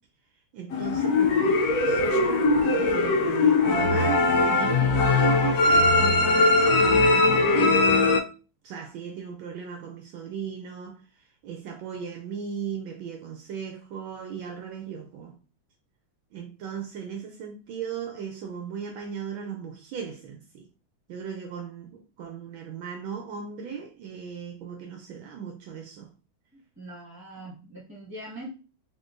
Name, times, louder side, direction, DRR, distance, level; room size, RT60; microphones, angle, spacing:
voice 1, 0.5-1.6 1.9-2.5 2.8-8.0 8.6-11.0 11.4-15.4 16.3-20.7 21.1-26.1 27.4-27.5, right 7 dB, 75° right, 1.3 m, -36 dB
sound 1, 0.7-8.2, left 3 dB, 85° left, 0.8 m, -21 dB
voice 2, 26.5-28.5, right 1 dB, 10° right, 1.5 m, -42 dB
3.7 x 3.4 x 2.5 m
omnidirectional pair, 2.3 m